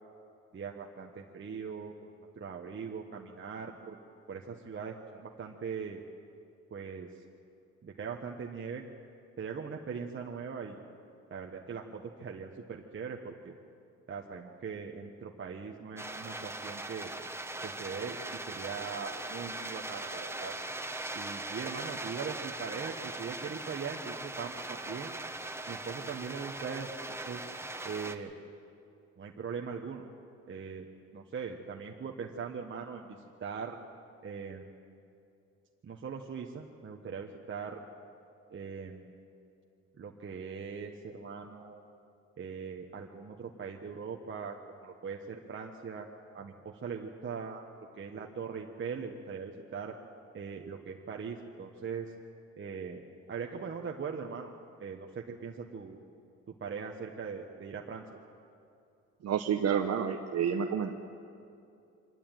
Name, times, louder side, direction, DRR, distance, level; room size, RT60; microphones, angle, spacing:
voice 1, 0.5-2.1 2.4-4.0 4.3-6.0 6.7-7.2 7.8-8.8 9.4-10.8 11.3-13.5 14.1-17.1 17.6-18.2 18.5-20.5 21.1-25.1 25.7-27.4 27.8-28.3 29.2-30.0 30.5-30.9 31.1-33.8 34.2-34.7 35.8-37.9 38.5-39.1 40.0-41.8 42.4-46.1 46.3-47.6 47.9-49.9 50.3-52.1 52.6-53.0 53.3-54.5 54.8-56.0 56.6-58.2, right 6 dB, 40° right, 1 dB, 1.3 m, -40 dB
sound 1, 16.0-28.2, right 2 dB, 10° right, 1.1 m, -40 dB
voice 2, 59.2-60.9, right 7 dB, 55° right, 4 dB, 1.1 m, -29 dB
25.0 x 11.5 x 9.2 m, 2.6 s
cardioid pair, 90°, 30 cm